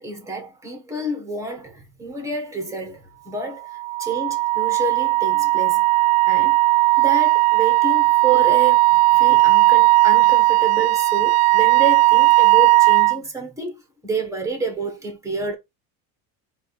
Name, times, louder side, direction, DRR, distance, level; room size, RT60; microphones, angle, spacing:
voice 1, 0.0-15.5, right 4 dB, 5° right, 1.7 m, -29 dB
Wind instrument woodwind instrument, 3.7-13.2, right 21 dB, 60° right, 0.5 m, -16 dB
4.0 x 2.9 x 4.1 m
cardioid pair, 140°, 42 cm